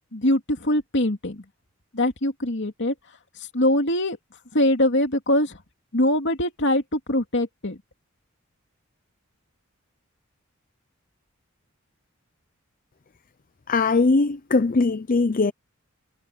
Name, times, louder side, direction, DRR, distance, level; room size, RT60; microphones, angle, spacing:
voice 1, 0.1-1.4 1.9-2.9 3.5-4.2 4.5-5.6 5.9-7.8, left 1 dB, 60° left, 2.9 m, -22 dB
voice 2, 13.7-15.5, left 3 dB, 40° left, 0.6 m, -20 dB
head